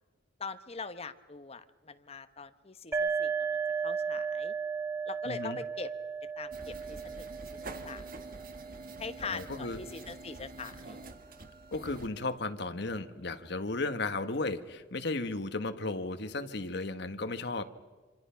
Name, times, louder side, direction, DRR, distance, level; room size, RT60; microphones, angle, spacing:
voice 1, 0.4-4.5 5.1-5.9 6.4-8.3 9.0-11.0, left 4 dB, 30° left, 10 dB, 1.0 m, -43 dB
sound 1, 2.9-10.4, right 5 dB, 10° right, 2.0 m, -36 dB
voice 2, 5.2-5.6 9.2-9.8 11.7-17.6, left 2 dB, 60° left, 9 dB, 1.4 m, -35 dB
sound 2, 6.5-12.1, right 2 dB, 50° right, 2.0 m, -47 dB
26.0 x 26.0 x 5.8 m, 1.4 s
head